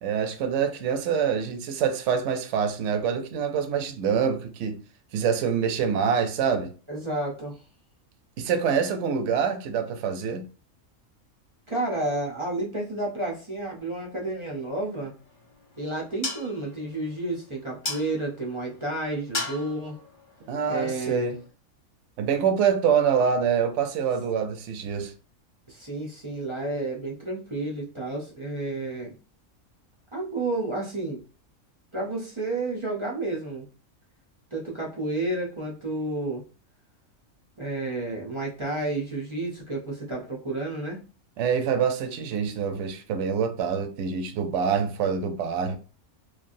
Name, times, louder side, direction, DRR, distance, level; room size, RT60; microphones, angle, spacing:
voice 1, 0.0-4.8 5.1-6.7 8.4-10.5 20.5-21.4 22.2-25.1 41.4-45.8, right 7 dB, 65° right, 0.8 m, -25 dB
voice 2, 6.9-7.6 11.7-15.1 15.8-20.0 20.7-21.3 25.7-29.2 30.1-31.2 31.9-33.6 34.5-36.4 37.6-41.0, right 2 dB, 45° right, 0.3 m, -31 dB
sound 1, 15.0-21.5, left 3 dB, 40° left, 1.0 m, -38 dB
3.2 x 2.3 x 2.5 m
omnidirectional pair, 1.5 m